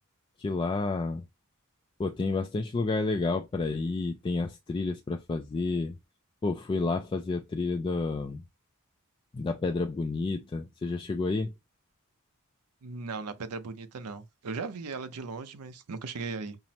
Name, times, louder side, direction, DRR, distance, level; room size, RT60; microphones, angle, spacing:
voice 1, 0.4-1.3 2.0-6.0 6.4-8.4 9.3-11.5, left 3 dB, 25° left, 0.3 m, -30 dB
voice 2, 12.8-16.6, right 4 dB, 85° right, 0.6 m, -37 dB
5.6 x 2.0 x 2.8 m
head